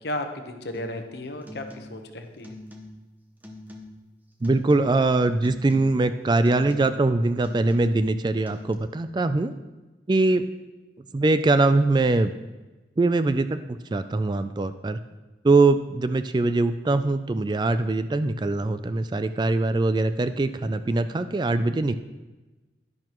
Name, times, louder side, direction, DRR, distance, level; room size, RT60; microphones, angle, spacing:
voice 1, 0.0-2.6, left 1 dB, 70° left, 5 dB, 1.0 m, -34 dB
sound 1, 0.7-1.1 1.4-2.1 2.4-3.1 3.4-4.1 4.4-5.1 5.4-6.1 6.5-7.1 7.4-8.1 8.5-8.7, left 1 dB, 10° right, 0.8 m, -43 dB
voice 2, 4.4-9.5 10.1-10.4 11.1-12.3 13.0-13.6 13.9-15.0 15.4-22.0, right 2 dB, 25° right, 11 dB, 0.3 m, -22 dB
11.0 x 10.5 x 3.0 m, 1.2 s
head